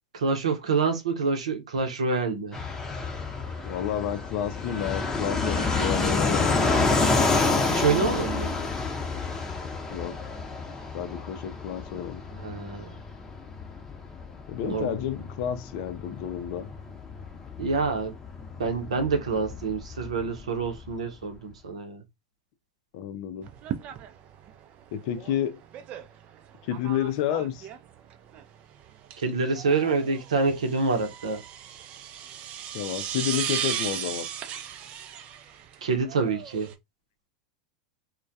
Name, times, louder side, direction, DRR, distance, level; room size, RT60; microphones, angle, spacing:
voice 1, 0.1-2.6 7.7-8.5 12.4-12.9 14.6-14.9 17.6-18.1 18.6-22.0 29.2-31.4 35.8-36.7, right 4 dB, 80° right, 0.7 m, -27 dB
Fixed-wing aircraft airplane, 2.5-20.9, left 3 dB, 15° left, 0.7 m, -29 dB
voice 2, 3.6-6.8 8.5-8.7 9.9-10.2 10.9-12.2 14.5-16.7 22.9-23.5 24.9-25.6 26.6-27.7 32.7-34.3, left 10 dB, 55° left, 0.4 m, -30 dB
sound 1, 23.4-36.7, right 9 dB, 40° right, 0.4 m, -37 dB
2.2 x 2.1 x 2.6 m
hypercardioid pair, 95°, 3 cm